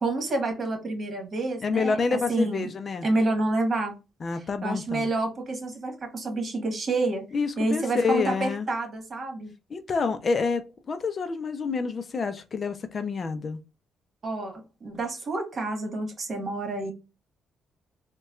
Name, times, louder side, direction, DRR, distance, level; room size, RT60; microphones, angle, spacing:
voice 1, 0.0-2.0 2.3-2.7 3.0-3.9 4.6-7.2 7.6-9.5 14.2-16.9, right 2 dB, 45° right, 4 dB, 1.4 m, -28 dB
voice 2, 1.6-3.1 4.2-5.1 7.3-8.7 9.7-10.6 10.9-13.6, left 4 dB, 40° left, 10 dB, 0.5 m, -28 dB
4.1 x 2.2 x 2.3 m, 0.28 s
cardioid pair, 90°, 0 cm